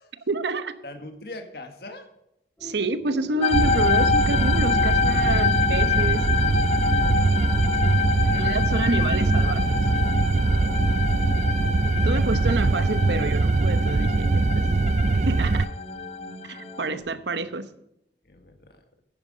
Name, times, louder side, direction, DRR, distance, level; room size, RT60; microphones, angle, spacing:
voice 1, 0.3-0.8 2.6-6.6 6.9-7.2 7.6-7.7 8.2-9.8 12.0-14.6 15.3-15.6 16.4-17.7, right 2 dB, 80° right, 12 dB, 0.9 m, -28 dB
voice 2, 0.8-2.1 7.9-9.1 9.6-12.0 16.9-17.4 18.2-18.8, left 2 dB, 60° left, 5 dB, 1.9 m, -45 dB
sound 1, 2.6-17.0, equal, 10° left, 2.8 m, -45 dB
sound 2, 3.4-16.9, left 6 dB, 35° left, 0.4 m, -27 dB
sound 3, 3.5-15.7, right 3 dB, 40° right, 0.4 m, -22 dB
10.5 x 9.6 x 5.1 m, 0.80 s
head